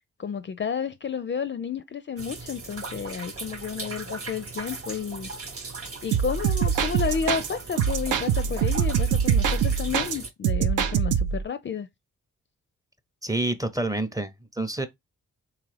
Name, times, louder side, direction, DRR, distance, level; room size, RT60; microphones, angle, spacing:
voice 1, 0.2-5.3 6.0-11.9, left 7 dB, 35° left, 0.4 m, -31 dB
sound 1, 2.2-10.3, right 3 dB, 45° right, 0.9 m, -38 dB
sound 2, 6.1-7.5 7.8-10.1 10.4-11.4, right 8 dB, 70° right, 0.5 m, -24 dB
voice 2, 13.2-14.9, right 2 dB, 10° right, 0.6 m, -28 dB
3.5 x 2.4 x 3.1 m
supercardioid pair, 40°, 32 cm